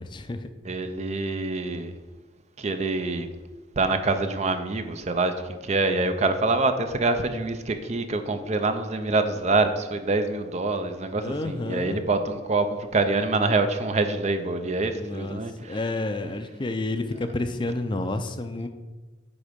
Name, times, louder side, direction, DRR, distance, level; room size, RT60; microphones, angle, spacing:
voice 1, 0.0-0.5 11.2-12.0 14.9-15.4 15.7-18.7, left 2 dB, 25° left, 8 dB, 0.5 m, -30 dB
voice 2, 0.7-1.9 2.6-3.3 3.8-15.8, right 3 dB, 40° right, 8 dB, 0.5 m, -25 dB
9.7 x 3.8 x 5.1 m, 1.2 s
head